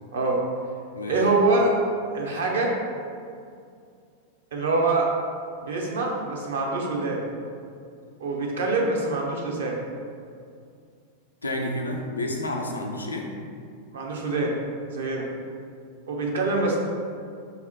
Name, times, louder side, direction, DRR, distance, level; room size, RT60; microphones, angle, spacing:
voice 1, 0.1-0.4 1.1-1.7 2.1-2.7 4.5-5.1 5.6-7.2 8.2-9.8 13.9-14.6 14.9-15.3 16.1-16.8, right 3 dB, 60° right, -1 dB, 0.6 m, -24 dB
voice 2, 11.4-13.3, left 1 dB, 80° left, 1 dB, 0.4 m, -30 dB
3.9 x 2.0 x 4.3 m, 2.3 s
figure-of-eight pair, 90°, 0 cm